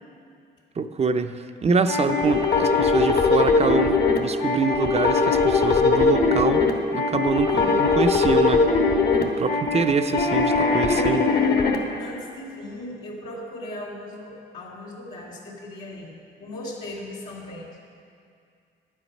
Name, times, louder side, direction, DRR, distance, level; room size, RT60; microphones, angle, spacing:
voice 1, 0.8-6.6 6.9-8.6 9.2-11.3, right 5 dB, 35° right, 8 dB, 0.5 m, -25 dB
sound 1, 1.9-11.8, left 4 dB, 55° left, 1.3 m, -20 dB
voice 2, 12.0-16.1 16.4-17.8, left 1 dB, 85° left, -7 dB, 2.4 m, -38 dB
11.0 x 8.0 x 5.4 m, 2.3 s
cardioid pair, 90°, 20 cm